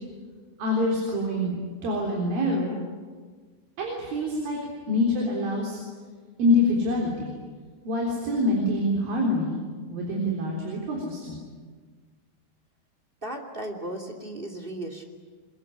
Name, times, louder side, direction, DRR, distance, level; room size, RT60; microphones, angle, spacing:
voice 1, 0.6-2.8 3.8-4.6 4.9-5.8 6.4-7.4 7.8-9.6 9.9-11.4, left 1 dB, 70° right, -1 dB, 5.6 m, -25 dB
voice 2, 13.2-15.0, right 1 dB, 15° right, 4 dB, 2.1 m, -35 dB
24.5 x 21.0 x 9.8 m, 1.5 s
omnidirectional pair, 4.4 m